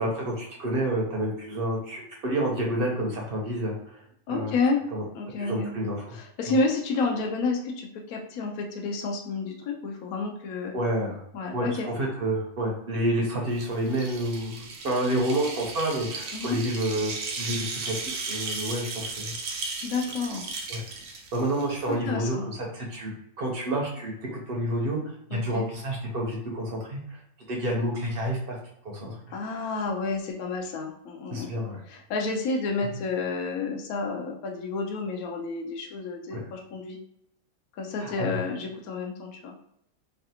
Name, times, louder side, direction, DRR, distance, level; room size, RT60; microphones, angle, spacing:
voice 1, 0.0-3.7 4.3-4.5 4.9-5.0 5.4-6.2 10.7-11.2 11.5-19.3 20.7-20.8 21.3-23.1 23.4-27.2 27.5-28.6 28.8-29.2 31.3-31.8 32.8-32.9 36.3-36.4 38.0-38.3, right 1 dB, 50° right, -1 dB, 0.7 m, -29 dB
voice 2, 4.3-4.8 5.1-5.7 6.1-10.7 11.3-11.9 16.3-16.6 19.8-20.5 21.9-22.5 25.3-25.6 29.3-31.5 31.9-37.0 37.8-39.5, left 3 dB, 70° left, 1 dB, 0.9 m, -30 dB
sound 1, 13.5-21.9, right 3 dB, 75° right, 1.2 m, -36 dB
3.2 x 2.3 x 2.8 m, 0.75 s
omnidirectional pair, 1.6 m